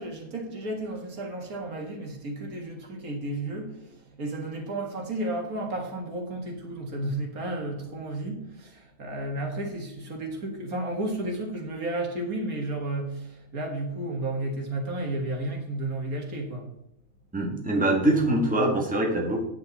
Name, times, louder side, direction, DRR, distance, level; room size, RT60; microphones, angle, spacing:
voice 1, 0.0-16.7, right 1 dB, 70° right, 2 dB, 2.2 m, -32 dB
voice 2, 17.3-19.4, right 1 dB, 5° right, 0 dB, 1.5 m, -24 dB
9.2 x 8.5 x 4.1 m, 0.78 s
omnidirectional pair, 1.6 m